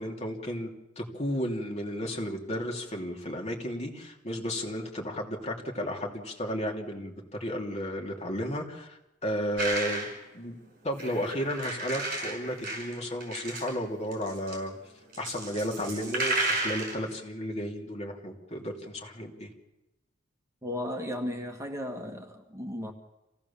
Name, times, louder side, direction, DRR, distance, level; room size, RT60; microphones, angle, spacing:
voice 1, 0.0-10.1 10.3-10.6 10.8-14.7 15.2-19.5, equal, 35° left, 1 dB, 3.0 m, -33 dB
sound 1, 9.6-10.2 11.0-13.8 14.1-14.6 15.1-17.1, right 2 dB, 45° right, 5.8 m, -33 dB
voice 2, 20.6-22.9, left 1 dB, 15° right, 3 dB, 1.7 m, -35 dB
27.0 x 17.0 x 7.2 m, 0.97 s
head